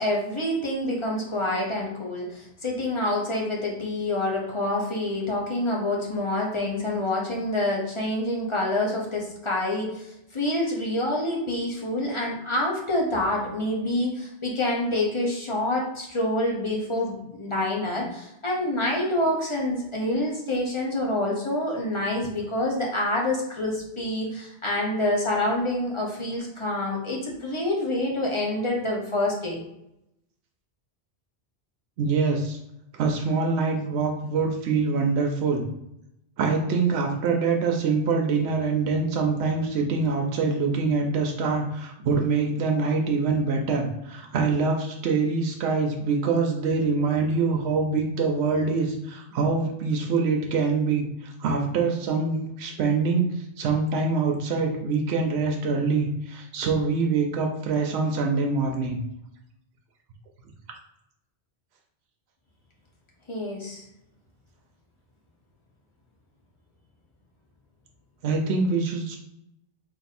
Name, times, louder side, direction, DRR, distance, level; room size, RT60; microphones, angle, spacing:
voice 1, 0.0-29.6 63.3-63.8, left 1 dB, 30° left, -3 dB, 0.9 m, -27 dB
voice 2, 32.0-32.6 32.9-35.6 36.4-59.0 68.2-69.2, right 4 dB, 80° right, 1 dB, 0.9 m, -25 dB
3.4 x 2.6 x 4.1 m, 0.82 s
omnidirectional pair, 1.1 m